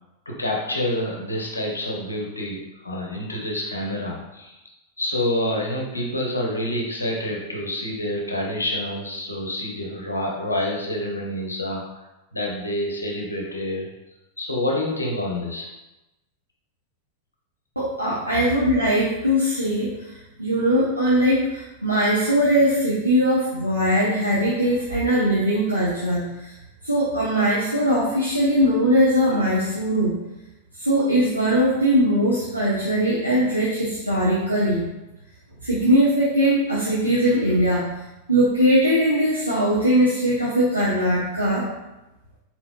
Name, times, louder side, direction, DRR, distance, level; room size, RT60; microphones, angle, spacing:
voice 1, 0.3-4.6 5.0-12.0 12.3-13.9 14.4-15.7, left 1 dB, 80° left, -1 dB, 0.7 m, -27 dB
voice 2, 17.8-26.5 26.8-30.2 30.8-34.8 35.6-37.9 38.3-41.7, equal, 90° right, -8 dB, 0.7 m, -20 dB
4.1 x 3.9 x 2.2 m, 0.99 s
figure-of-eight pair, 90°, 0 cm